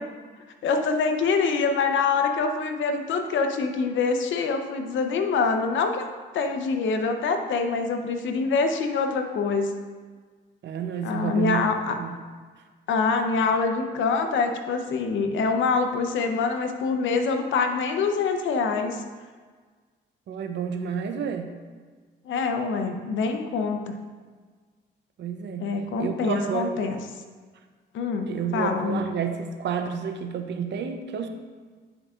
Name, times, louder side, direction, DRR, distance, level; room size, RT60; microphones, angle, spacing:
voice 1, 0.6-6.0 6.3-9.7 11.0-12.0 12.9-19.0 22.3-23.9 25.6-27.0 27.9-29.0, left 4 dB, 75° left, 6 dB, 0.7 m, -25 dB
voice 2, 10.6-11.7 12.0-12.2 20.3-21.5 25.2-25.7 26.0-26.8 28.3-31.3, right 7 dB, 60° right, 6 dB, 0.7 m, -30 dB
9.8 x 4.7 x 2.5 m, 1.5 s
cardioid pair, 90°, 20 cm